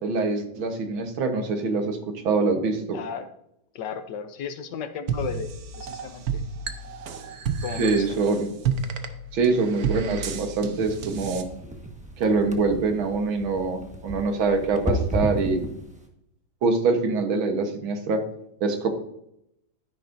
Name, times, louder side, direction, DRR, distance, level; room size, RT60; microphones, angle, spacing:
voice 1, 0.0-3.0 7.8-8.5 9.3-11.5 12.2-15.6 16.6-18.2 18.6-18.9, right 4 dB, 80° right, 5 dB, 2.0 m, -24 dB
voice 2, 2.9-3.3 3.7-6.4 7.6-8.2, left 6 dB, 65° left, 9 dB, 1.3 m, -34 dB
sound 1, 5.1-11.4, right 6 dB, 60° right, 1.2 m, -31 dB
sound 2, 10.8-16.1, equal, 5° right, 0.8 m, -33 dB
12.5 x 10.5 x 2.6 m, 0.78 s
omnidirectional pair, 2.2 m